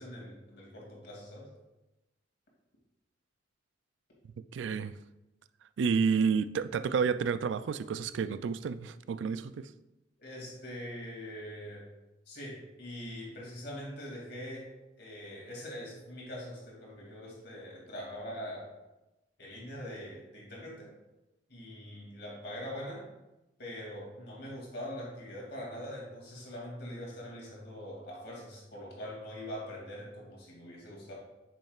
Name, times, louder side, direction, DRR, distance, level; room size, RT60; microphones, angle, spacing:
voice 1, 0.0-1.5 10.2-11.8 12.3-14.7 15.0-18.7 19.4-20.9 21.5-23.0 23.6-31.1, equal, 60° left, 2.5 m, -43 dB
voice 2, 4.5-4.9 5.8-9.7, right 6 dB, 70° right, 0.3 m, -30 dB
8.6 x 6.3 x 2.4 m
head